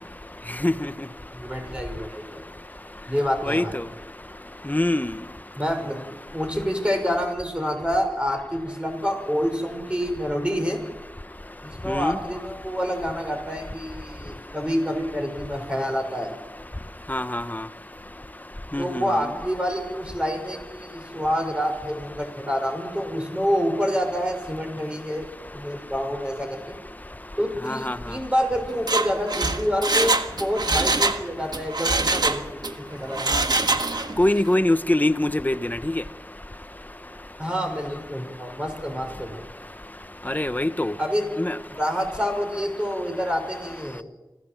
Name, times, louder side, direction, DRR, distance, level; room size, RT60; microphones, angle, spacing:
voice 1, 1.3-2.4 3.1-3.7 5.6-6.0 6.3-10.8 11.6-16.3 18.8-26.8 27.4-33.4 37.4-39.4 41.0-41.2 41.7-44.0, equal, 15° right, 5.8 m, -27 dB
voice 2, 3.4-3.8 4.7-5.1 11.9-12.2 17.1-17.6 18.7-19.0 27.6-28.0 33.3-33.4 34.2-35.9 40.3-40.9 41.4-41.5, left 1 dB, 20° left, 1.0 m, -23 dB
Mechanisms, 28.7-31.2 31.5-32.7 33.1-34.2 34.5-34.6, right 3 dB, 60° right, 1.6 m, -23 dB
26.0 x 15.5 x 7.7 m
wide cardioid pair, 55°, 8 cm